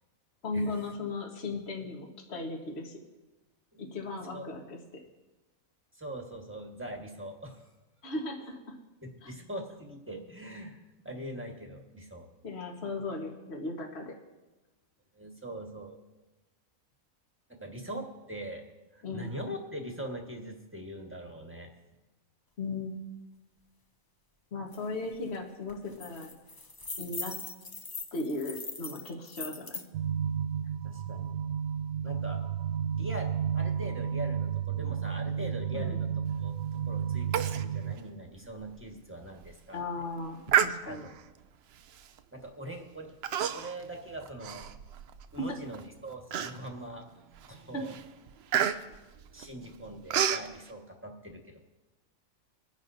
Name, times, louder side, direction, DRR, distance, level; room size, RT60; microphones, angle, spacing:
voice 1, 0.4-3.0 3.8-4.8 8.0-8.6 9.2-9.3 12.4-14.1 19.0-19.3 22.6-22.9 24.5-26.3 27.0-27.4 28.1-29.8 35.7-36.0 39.7-41.1 47.7-47.8, left 3 dB, 50° left, 1 dB, 1.6 m, -36 dB
voice 2, 5.9-7.7 9.0-12.3 15.1-16.0 17.5-18.7 18.9-21.7 30.8-31.4 32.0-32.4 33.0-36.1 36.4-36.5 36.9-39.8 40.9-41.0 42.3-43.1 43.5-44.7 45.3-47.2 47.5-48.0 49.3-51.6, right 1 dB, 10° right, 1 dB, 1.4 m, -42 dB
sound 1, 24.7-24.8 25.1-25.4 25.7-29.9, left 3 dB, 30° left, 0.4 m, -41 dB
sound 2, 29.9-37.9, right 8 dB, 80° right, 1.0 m, -32 dB
Human voice, 37.3-37.7 38.0-38.1 38.6-38.7 39.3-39.5 40.5-41.2 42.0-42.2 43.2-43.8 44.2-45.2 45.7-45.8 46.3-46.9 47.4-47.6 47.9-50.5, right 9 dB, 65° right, 0.7 m, -30 dB
24.0 x 10.5 x 2.7 m, 1.1 s
omnidirectional pair, 1.5 m